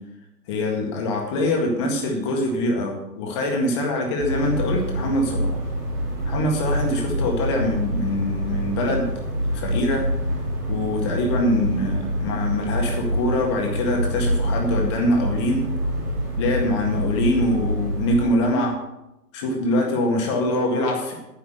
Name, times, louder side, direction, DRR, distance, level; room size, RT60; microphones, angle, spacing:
voice 1, 0.5-5.6 6.3-9.1 9.5-10.0 10.7-15.6 16.4-18.8 19.3-21.1, left 1 dB, 15° left, 1 dB, 1.9 m, -23 dB
sound 1, 4.2-18.3, equal, 5° right, 1.0 m, -26 dB
10.0 x 10.0 x 6.7 m, 0.91 s
hypercardioid pair, 155°, 48 cm